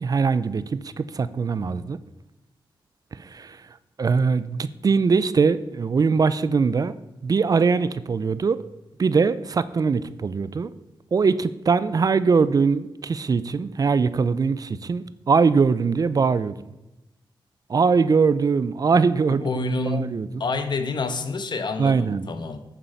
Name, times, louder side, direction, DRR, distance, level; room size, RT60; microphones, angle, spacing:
voice 1, 0.0-2.0 3.1-3.6 4.0-6.9 7.2-8.6 9.0-10.7 11.1-16.5 17.7-19.5 19.9-20.3 21.8-22.3, right 5 dB, 45° right, 15 dB, 0.4 m, -21 dB
voice 2, 19.3-22.6, left 3 dB, 55° left, 9 dB, 1.0 m, -28 dB
9.0 x 6.9 x 5.6 m, 0.98 s
wide cardioid pair, 125°, 9 cm